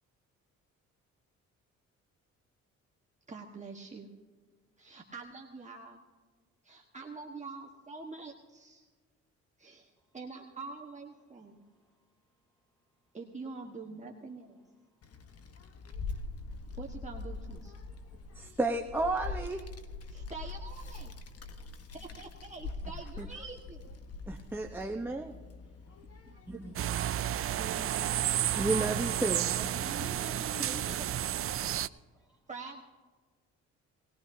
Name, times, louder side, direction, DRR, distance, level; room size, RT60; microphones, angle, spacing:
voice 1, 3.3-4.1 4.8-6.0 6.6-8.9 9.6-11.6 13.1-14.6 16.8-17.8 20.1-21.2 21.9-23.9 26.3-28.3 30.3-30.8 32.5-32.8, right 4 dB, 25° right, -1 dB, 1.4 m, -46 dB
Child speech kid speaking, 15.0-29.4, left 3 dB, 50° left, 1.2 m, -44 dB
voice 2, 18.3-19.7 23.2-23.3 24.3-25.4 26.6-26.7 28.6-29.4, right 2 dB, 5° right, 1 dB, 1.0 m, -32 dB
sound 1, 26.8-31.9, right 11 dB, 50° right, 0.4 m, -31 dB
voice 3, 29.4-31.1, equal, 15° left, 0 dB, 5.3 m, -45 dB
20.0 x 18.0 x 2.8 m, 1.5 s
cardioid pair, 90°, 30 cm